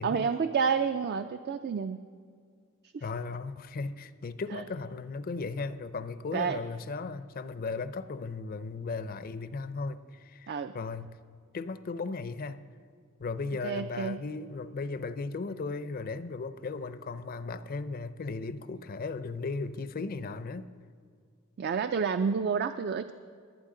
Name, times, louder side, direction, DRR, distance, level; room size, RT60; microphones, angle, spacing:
voice 1, 0.0-2.0 2.9-3.1 4.5-4.6 6.3-6.6 10.5-10.7 13.6-14.2 21.6-23.1, right 6 dB, 50° right, 10 dB, 0.4 m, -29 dB
voice 2, 3.0-11.1 11.5-12.6 13.2-20.7, left 4 dB, 45° left, 13 dB, 0.5 m, -36 dB
23.0 x 8.9 x 3.8 m, 2.1 s
head